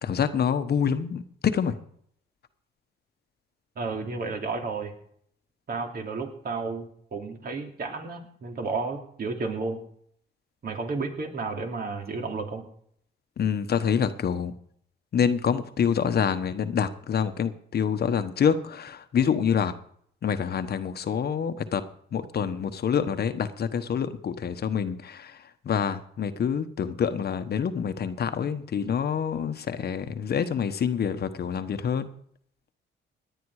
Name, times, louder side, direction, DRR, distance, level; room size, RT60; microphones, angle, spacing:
voice 1, 0.0-1.8 13.4-14.5 15.1-19.7 20.2-21.8 22.1-25.4 25.6-32.1, left 7 dB, 55° left, 10 dB, 1.2 m, -26 dB
voice 2, 3.8-4.9 5.7-9.8 10.6-12.6, right 4 dB, 50° right, 3 dB, 2.9 m, -32 dB
18.5 x 10.5 x 4.9 m, 0.65 s
cardioid pair, 90°, 20 cm